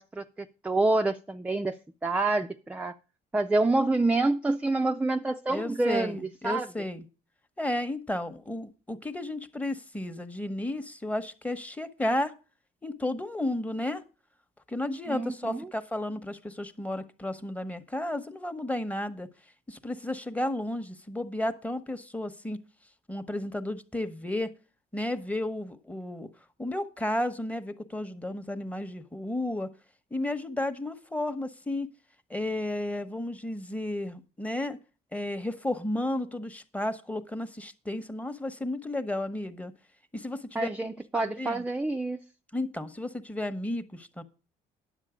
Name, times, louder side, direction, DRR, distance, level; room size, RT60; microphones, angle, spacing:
voice 1, 0.0-1.8 2.0-2.9 3.3-6.7 15.1-15.7 40.5-42.2, right 2 dB, 10° right, 7 dB, 0.4 m, -27 dB
voice 2, 5.5-7.0 7.6-12.3 12.8-14.0 14.7-19.3 19.7-22.6 23.1-24.5 24.9-26.3 26.6-29.7 30.1-31.9 32.3-34.8 35.1-39.7 40.1-40.7 41.1-41.6 42.5-44.2, left 1 dB, 10° left, 10 dB, 0.9 m, -33 dB
9.9 x 7.4 x 4.9 m, 0.33 s
cardioid pair, 110°, 17 cm